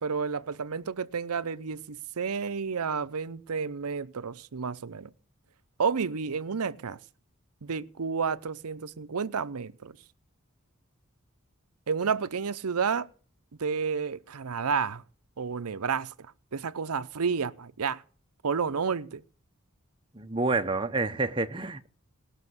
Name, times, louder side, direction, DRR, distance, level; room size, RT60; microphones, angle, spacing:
voice 1, 0.0-5.1 5.8-7.0 7.6-10.0 11.9-13.1 13.6-15.0 15.4-16.1 16.5-18.0 18.4-19.2, right 5 dB, 90° right, 0.7 m, -30 dB
voice 2, 20.1-21.9, right 3 dB, 20° right, 0.7 m, -28 dB
19.0 x 6.4 x 7.9 m
head